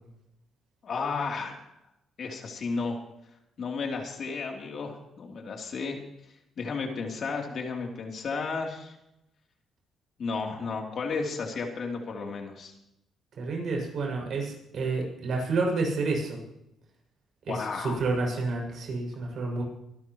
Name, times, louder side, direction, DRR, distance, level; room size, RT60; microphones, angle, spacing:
voice 1, 0.8-1.6 2.2-3.0 3.6-6.0 6.6-9.0 10.2-12.7 17.5-18.0, left 4 dB, 55° left, 1 dB, 3.3 m, -33 dB
voice 2, 13.4-16.4 17.5-19.6, right 3 dB, 60° right, 0 dB, 6.6 m, -29 dB
25.0 x 12.5 x 3.2 m, 0.84 s
cardioid pair, 90°, 0 cm